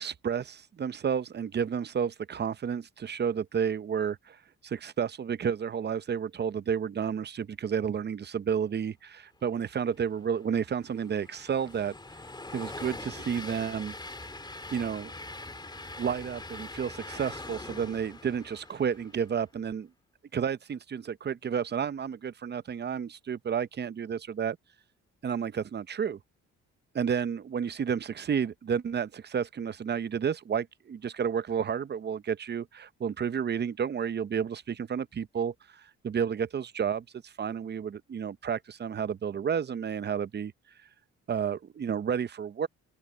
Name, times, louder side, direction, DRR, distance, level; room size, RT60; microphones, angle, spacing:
voice 1, 0.0-11.9 12.5-13.9 14.7-15.1 16.0-19.9 20.3-24.6 25.2-26.2 26.9-40.5 41.3-42.7, right 7 dB, 35° right, 0.7 m, -31 dB
Train, 10.0-19.4, left 2 dB, 15° left, 2.6 m, -43 dB
open air
cardioid pair, 90°, 30 cm